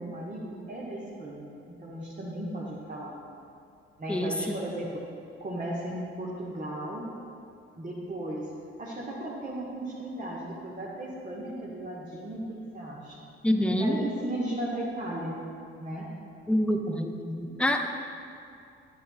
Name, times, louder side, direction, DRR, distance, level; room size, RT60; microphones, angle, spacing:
voice 1, 0.0-3.1 4.0-5.0 5.4-7.1 7.8-8.5 8.8-12.4 12.7-13.3 13.8-15.4 15.8-16.1, right 1 dB, 25° right, -5 dB, 1.3 m, -36 dB
voice 2, 13.4-14.0 16.5-17.9, equal, 5° left, 5 dB, 0.5 m, -26 dB
11.5 x 7.4 x 2.3 m, 2.6 s
figure-of-eight pair, 45°, 31 cm